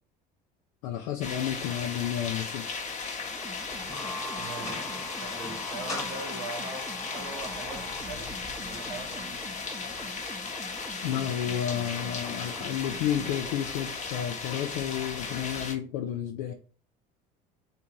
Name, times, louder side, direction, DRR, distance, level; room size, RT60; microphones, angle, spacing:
voice 1, 0.8-2.6 11.0-16.5, left 10 dB, 80° left, 0.6 m, -31 dB
sound 1, 1.2-15.7, left 4 dB, 35° left, 1.0 m, -36 dB
sound 2, 3.3-13.3, right 3 dB, 10° right, 0.5 m, -46 dB
sound 3, 3.7-8.1, left 2 dB, 15° left, 1.3 m, -39 dB
voice 2, 4.4-4.9 5.2-8.3 8.6-9.4, right 4 dB, 85° right, 1.1 m, -41 dB
3.5 x 2.7 x 4.5 m
hypercardioid pair, 80°, 21 cm